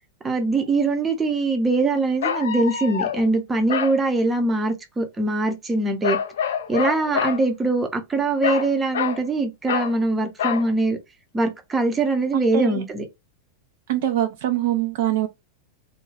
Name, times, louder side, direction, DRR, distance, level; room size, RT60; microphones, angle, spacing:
voice 1, 0.2-6.2 6.7-11.0 11.3-13.0, right 2 dB, 15° right, 0.6 m, -22 dB
sound 1, 0.6-0.7 2.2-3.3 3.7-4.0 6.0-7.4 8.4-9.2 9.7-9.9 10.4-10.7, left 8 dB, 60° left, 0.5 m, -26 dB
voice 2, 12.3-12.8 13.9-15.3, right 12 dB, 55° right, 0.4 m, -23 dB
2.4 x 2.2 x 3.2 m
figure-of-eight pair, 90°, 0 cm